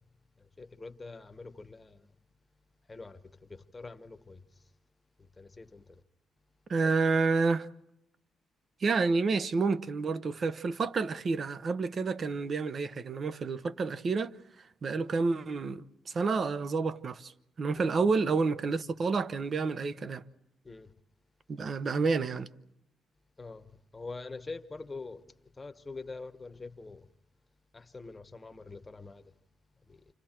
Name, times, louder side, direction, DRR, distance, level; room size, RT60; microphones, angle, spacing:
voice 1, 0.6-2.0 2.9-3.2 3.5-4.4 5.4-5.8 17.8-17.9 20.6-20.9 23.4-23.7 23.9-25.2 25.6-27.1 27.7-29.2, left 3 dB, 20° left, 1.1 m, -44 dB
voice 2, 6.7-7.7 8.8-14.3 14.8-20.2 21.5-22.5, right 4 dB, 45° right, 0.9 m, -29 dB
29.5 x 26.0 x 4.5 m
cardioid pair, 90°, 0 cm